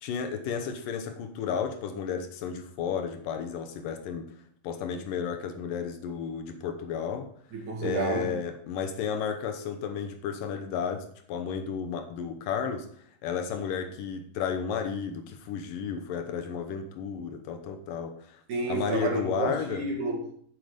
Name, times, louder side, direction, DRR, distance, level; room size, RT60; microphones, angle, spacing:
voice 1, 0.0-4.3 4.6-7.3 7.8-12.9 13.2-18.4 18.7-19.8, left 7 dB, 75° left, 5 dB, 2.4 m, -33 dB
voice 2, 7.5-8.3 18.5-20.3, right 3 dB, 60° right, -1 dB, 3.4 m, -30 dB
9.1 x 7.7 x 5.1 m, 0.62 s
omnidirectional pair, 4.2 m